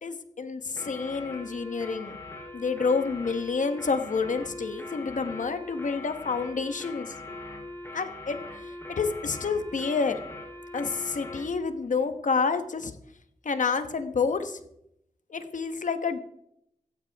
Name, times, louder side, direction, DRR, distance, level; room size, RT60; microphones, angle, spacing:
voice 1, 0.0-2.2 2.5-7.1 7.9-8.4 8.9-10.2 10.7-12.9 13.4-14.6 15.3-16.2, left 5 dB, 75° left, 9 dB, 1.3 m, -28 dB
sound 1, 0.8-11.5, left 2 dB, 20° left, 3.8 m, -41 dB
16.0 x 14.0 x 3.6 m, 0.76 s
wide cardioid pair, 105°, 13 cm